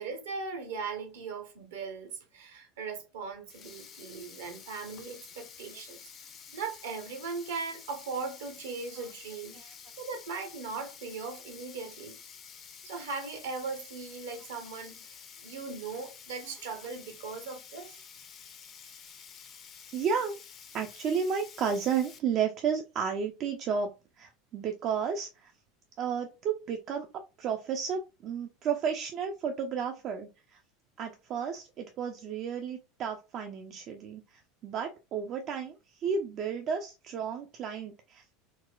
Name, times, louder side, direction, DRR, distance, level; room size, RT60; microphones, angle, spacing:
voice 1, 0.0-6.0 6.5-9.6 10.0-12.2 12.8-17.9, right 4 dB, 65° right, 0.8 m, -39 dB
Sink (filling or washing), 3.5-22.2, left 7 dB, 35° left, 0.5 m, -50 dB
voice 2, 19.9-20.3 20.7-25.5 26.0-27.1 27.4-30.6 31.0-38.5, right 6 dB, 45° right, 0.3 m, -32 dB
3.9 x 2.1 x 2.2 m
figure-of-eight pair, 75°, 0 cm